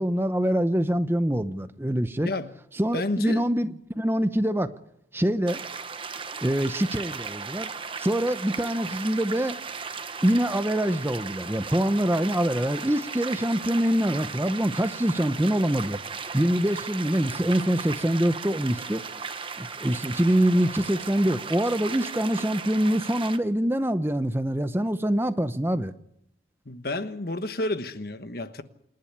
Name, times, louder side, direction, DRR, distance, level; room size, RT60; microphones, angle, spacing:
voice 1, 0.0-2.3 2.7-4.7 5.1-5.6 6.4-7.7 8.0-9.6 10.2-19.0 19.6-25.9, right 1 dB, 15° right, 0.7 m, -25 dB
voice 2, 2.2-2.5 2.9-3.8 26.7-28.6, left 2 dB, 55° left, 1.3 m, -31 dB
sound 1, 5.5-23.4, right 5 dB, 30° right, 1.0 m, -36 dB
27.5 x 10.5 x 9.8 m
head